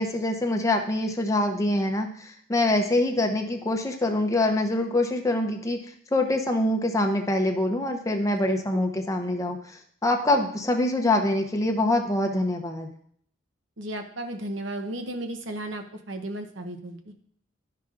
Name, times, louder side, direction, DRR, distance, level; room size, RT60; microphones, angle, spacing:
voice 1, 0.0-2.1 2.5-5.8 6.1-9.6 10.0-12.9, left 1 dB, 15° left, 3 dB, 0.6 m, -24 dB
voice 2, 13.8-17.1, right 1 dB, 70° right, 5 dB, 0.8 m, -34 dB
12.0 x 5.7 x 2.5 m, 0.63 s
head